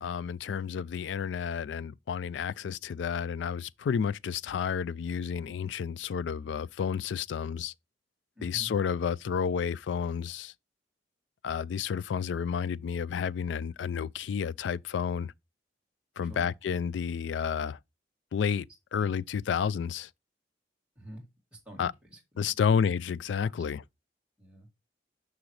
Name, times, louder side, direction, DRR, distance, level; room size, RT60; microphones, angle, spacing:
voice 1, 0.0-7.7 8.4-10.5 11.4-15.3 16.2-17.8 18.3-18.7 18.9-20.1 21.8-21.9 22.4-23.8, left 7 dB, 80° left, 0.3 m, -31 dB
voice 2, 8.4-8.7 16.2-16.5 19.0-19.1 21.0-21.2 21.5-22.8 24.4-24.7, equal, 5° right, 2.2 m, -47 dB
6.2 x 6.0 x 3.2 m
head